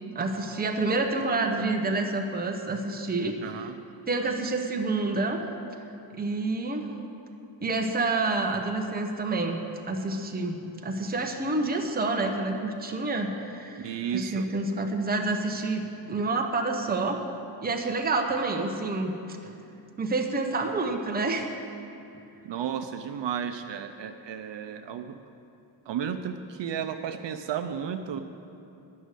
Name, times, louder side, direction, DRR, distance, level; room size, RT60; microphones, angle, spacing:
voice 1, 0.1-3.7 4.1-5.4 6.1-6.9 7.6-9.6 9.9-15.8 16.1-17.2 17.6-19.1 20.0-21.5, right 3 dB, 20° right, 2 dB, 0.8 m, -28 dB
voice 2, 3.4-3.8 13.8-14.5 22.4-25.2 25.9-28.2, right 8 dB, 65° right, 7 dB, 0.6 m, -33 dB
10.5 x 6.3 x 8.1 m, 2.7 s
wide cardioid pair, 160°, 46 cm